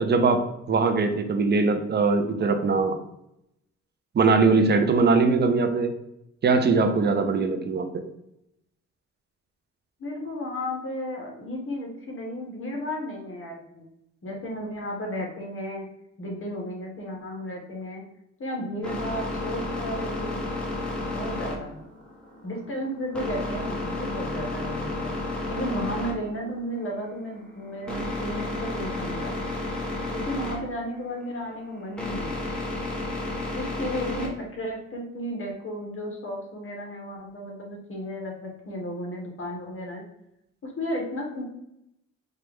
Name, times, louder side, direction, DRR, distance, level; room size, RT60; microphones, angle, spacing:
voice 1, 0.0-2.9 4.1-5.9 6.4-8.0, right 4 dB, 35° right, 7 dB, 0.6 m, -21 dB
voice 2, 10.0-13.9 14.2-15.8 16.2-18.0 18.4-20.4 21.1-21.9 22.4-25.1 25.5-29.3 30.1-32.3 33.5-40.0 40.6-41.4, equal, 45° left, 0 dB, 1.3 m, -33 dB
sound 1, 18.8-34.3, left 2 dB, 5° left, 1.1 m, -32 dB
4.4 x 2.5 x 3.5 m, 0.82 s
cardioid pair, 90°, 30 cm